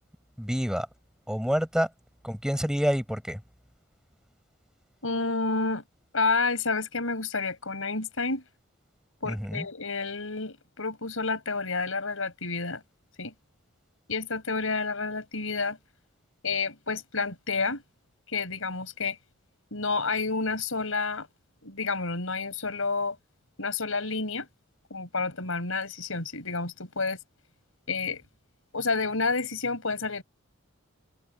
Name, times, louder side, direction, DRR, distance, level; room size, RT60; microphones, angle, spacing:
voice 1, 0.4-0.9 1.3-1.9 2.2-3.4 9.2-9.7, equal, 5° right, 6.0 m, -27 dB
voice 2, 5.0-5.8 6.1-8.4 9.2-12.8 13.2-13.3 14.1-15.8 16.4-17.8 18.3-19.2 19.7-21.3 21.6-23.2 23.6-24.5 24.9-27.2 27.9-28.2 28.7-30.2, left 4 dB, 70° left, 6.9 m, -29 dB
head